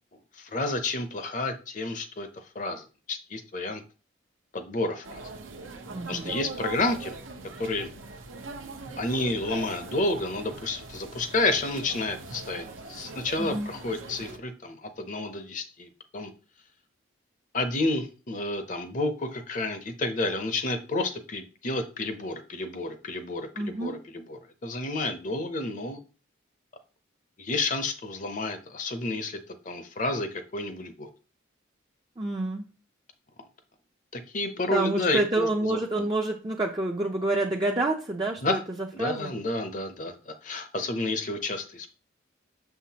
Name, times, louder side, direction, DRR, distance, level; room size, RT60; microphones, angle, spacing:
voice 1, 0.3-3.8 4.5-5.2 6.1-7.2 7.6-7.9 9.0-16.3 17.5-26.0 27.4-29.4 29.7-31.1 34.1-36.0 38.4-38.6 38.9-41.9, left 2 dB, 40° left, 8 dB, 0.6 m, -30 dB
sound 1, 5.0-14.4, right 3 dB, 80° right, 0.8 m, -41 dB
voice 2, 5.9-6.3 13.4-13.7 23.6-24.0 32.2-32.7 34.7-38.6 39.0-39.3, right 2 dB, 20° right, 0 dB, 0.5 m, -28 dB
6.6 x 5.7 x 2.8 m, 0.34 s
head